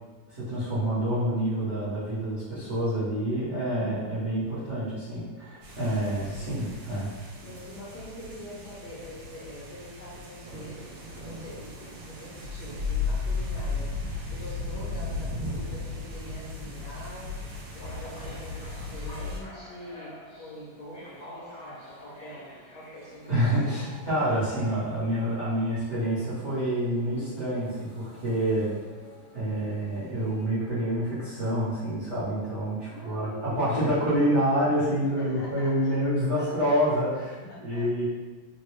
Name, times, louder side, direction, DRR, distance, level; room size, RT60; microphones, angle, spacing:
voice 1, 0.3-7.1 23.3-28.7 29.3-38.1, equal, 50° right, -11 dB, 0.9 m, -27 dB
voice 2, 3.7-4.3 6.2-7.0 7.4-13.9 14.3-17.4 17.7-23.6 32.9-34.2 35.2-36.0 36.4-36.8 37.5-37.9, left 1 dB, 70° left, -5 dB, 1.0 m, -44 dB
sound 1, 5.6-19.4, left 3 dB, 75° right, 1.3 m, -35 dB
sound 2, 17.8-30.5, left 1 dB, 45° left, 0.6 m, -49 dB
3.1 x 2.1 x 3.1 m, 1.3 s
omnidirectional pair, 2.1 m